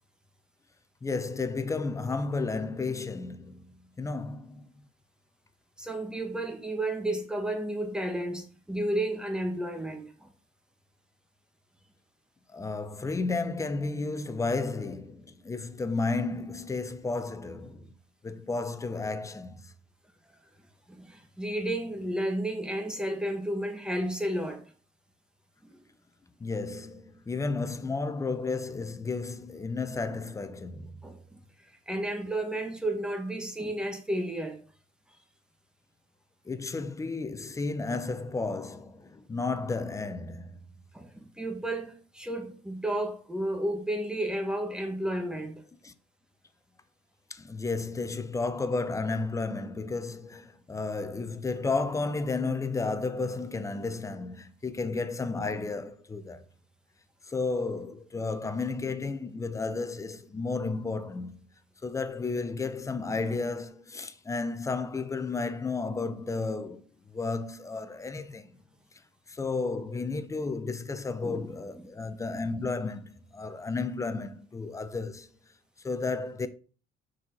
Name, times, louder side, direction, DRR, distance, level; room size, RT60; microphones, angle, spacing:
voice 1, 1.0-4.9 12.5-17.9 18.2-19.7 26.4-30.9 36.5-40.6 45.8-45.9 47.3-56.4 57.2-61.5 61.8-66.8 67.1-68.6 69.3-75.3 75.8-76.5, left 3 dB, 20° left, 0.8 m, -32 dB
voice 2, 5.8-10.3 20.3-20.4 20.9-24.6 25.6-25.8 31.0-31.2 31.9-34.6 40.9-45.6 71.2-71.5, right 1 dB, 5° right, 1.5 m, -32 dB
6.5 x 4.5 x 4.5 m
cardioid pair, 110°, 17 cm